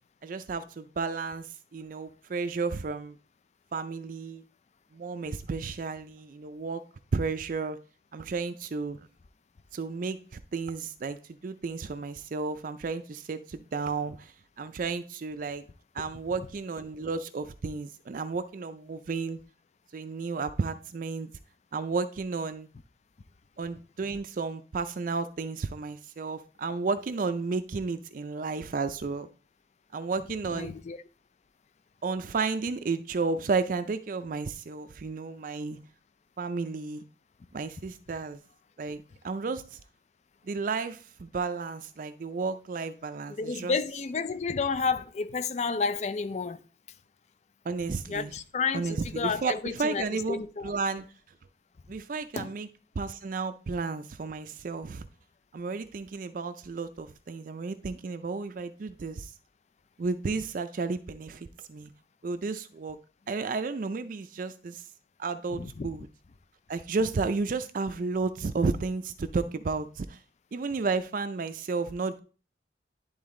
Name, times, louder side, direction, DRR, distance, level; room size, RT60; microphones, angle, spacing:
voice 1, 0.2-3.1 3.7-4.4 4.9-6.8 7.1-7.8 8.1-9.0 9.7-11.2 11.4-15.6 15.9-19.4 19.9-21.3 21.7-22.7 23.6-29.3 29.9-30.7 32.0-35.8 36.4-37.0 37.5-38.4 38.8-39.8 40.5-43.7 47.6-48.3 48.7-51.0 51.9-52.7 53.0-55.1 55.5-59.3 60.0-61.9 62.2-63.0 63.3-64.8 65.2-66.1 66.7-70.2 70.5-72.2, right 4 dB, 50° right, 0.4 m, -32 dB
voice 2, 30.5-31.0 43.3-46.6 48.1-50.6 52.4-52.5 65.5-65.9, left 5 dB, 40° left, 0.4 m, -31 dB
10.5 x 3.9 x 3.7 m
head